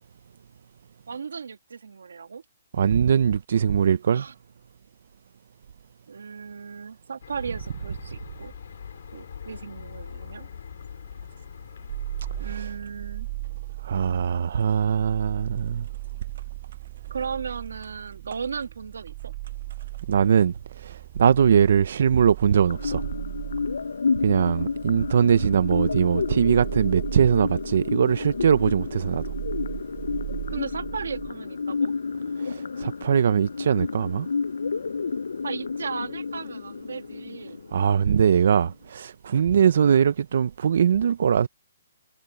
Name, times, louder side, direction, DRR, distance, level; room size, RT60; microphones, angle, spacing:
voice 1, 1.1-2.4 4.1-4.3 6.1-8.5 9.1-10.5 12.4-13.3 17.1-19.3 30.5-31.9 35.4-37.6, right 6 dB, 80° right, 2.0 m, -35 dB
voice 2, 2.7-4.3 12.6-12.7 13.8-15.9 20.1-23.1 24.2-29.2 32.4-34.3 37.7-41.5, right 7 dB, 50° right, 0.4 m, -21 dB
sound 1, 7.2-12.6, left 7 dB, 50° left, 3.4 m, -42 dB
sound 2, 11.9-31.3, right 20 dB, 25° right, 1.0 m, -37 dB
sound 3, 22.7-38.7, left 4 dB, 90° left, 0.4 m, -31 dB
hypercardioid pair, 175°, 0 cm